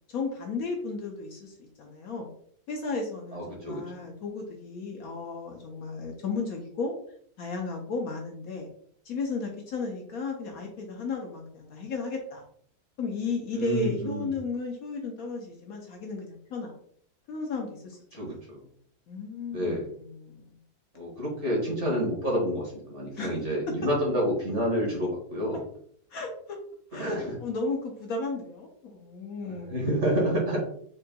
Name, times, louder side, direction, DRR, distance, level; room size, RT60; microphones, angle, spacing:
voice 1, 0.1-2.3 2.7-6.9 7.4-8.7 9.0-12.4 13.0-16.7 17.3-18.0 18.3-18.4 19.1-20.4 23.1-23.3 26.1-26.6 26.9-29.9, left 3 dB, 65° left, 1 dB, 1.0 m, -34 dB
voice 2, 3.3-3.8 13.6-14.4 18.1-18.6 19.5-19.9 20.9-25.6 26.9-27.3 29.4-30.6, equal, 45° right, -2 dB, 1.5 m, -29 dB
4.1 x 3.7 x 2.2 m, 0.63 s
omnidirectional pair, 1.8 m